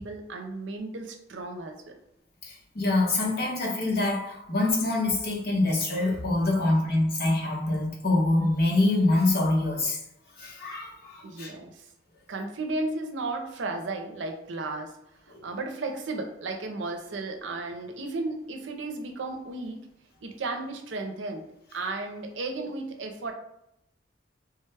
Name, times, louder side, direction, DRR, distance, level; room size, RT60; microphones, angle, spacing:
voice 1, 0.0-1.9 11.2-11.8 12.3-15.0 15.2-19.9 20.2-21.5 21.7-23.3, right 2 dB, 80° right, 4 dB, 0.5 m, -34 dB
voice 2, 2.4-10.0 10.4-11.5 15.3-15.4, left 2 dB, 55° left, -3 dB, 1.0 m, -25 dB
3.4 x 2.2 x 3.3 m, 0.80 s
head